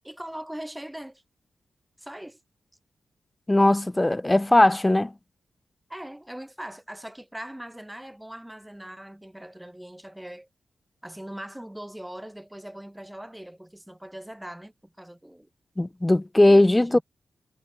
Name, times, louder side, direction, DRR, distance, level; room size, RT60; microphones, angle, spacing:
voice 1, 0.0-1.2 2.0-2.4 5.9-10.5 11.0-15.5 16.5-17.0, right 1 dB, 5° right, 8.0 m, -41 dB
voice 2, 3.5-5.1 15.8-17.0, left 1 dB, 15° left, 1.7 m, -19 dB
cardioid pair, 75°, 0 cm